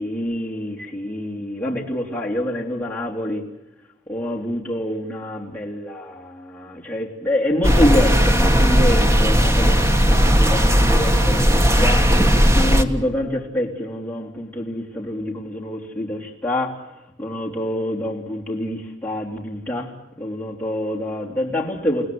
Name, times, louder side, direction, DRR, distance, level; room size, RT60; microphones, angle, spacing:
voice 1, 0.0-3.4 4.1-12.1 12.5-16.8 17.2-22.1, left 1 dB, 10° left, 3.5 m, -26 dB
sound 1, 7.6-12.8, equal, 15° right, 1.5 m, -16 dB
30.0 x 18.0 x 7.9 m
head